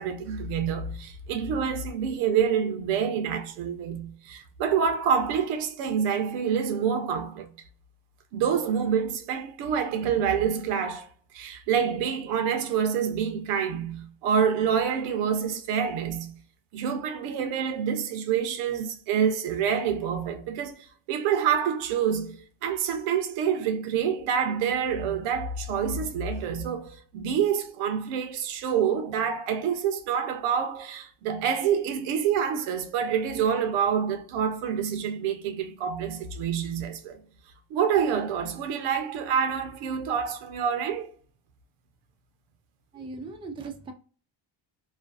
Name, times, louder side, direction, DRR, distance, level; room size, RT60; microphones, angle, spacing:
voice 1, 0.0-7.5 8.3-11.1 11.3-16.4 16.7-37.2 37.7-41.1, right 7 dB, 80° right, 0.7 m, -27 dB
voice 2, 42.9-43.9, right 3 dB, 10° right, 0.3 m, -38 dB
2.4 x 2.2 x 2.4 m
supercardioid pair, 90°, 49 cm